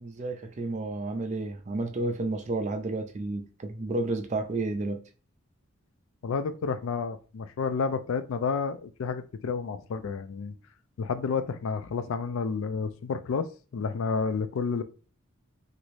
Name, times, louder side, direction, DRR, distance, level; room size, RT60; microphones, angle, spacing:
voice 1, 0.0-5.0, right 2 dB, 35° right, 0.4 m, -31 dB
voice 2, 6.2-10.5 11.0-13.5 13.7-14.8, left 5 dB, 70° left, 0.4 m, -30 dB
3.0 x 2.6 x 3.1 m
head